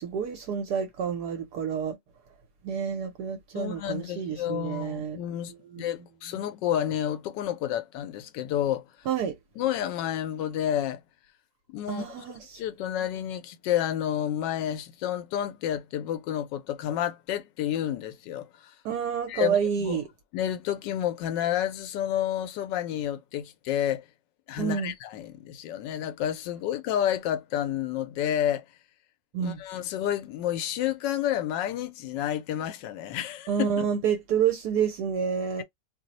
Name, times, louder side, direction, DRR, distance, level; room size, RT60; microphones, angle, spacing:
voice 1, 0.0-2.0 2.6-5.2 5.7-5.9 9.1-9.3 11.9-12.6 18.8-20.1 24.6-24.9 29.3-29.6 33.5-35.6, right 7 dB, 70° right, 1.2 m, -28 dB
voice 2, 3.5-8.8 9.6-11.0 11.7-12.0 12.6-18.7 19.3-20.0 20.3-24.0 24.5-28.6 29.4-33.9, left 11 dB, 90° left, 1.2 m, -30 dB
3.0 x 2.0 x 3.9 m
omnidirectional pair, 1.9 m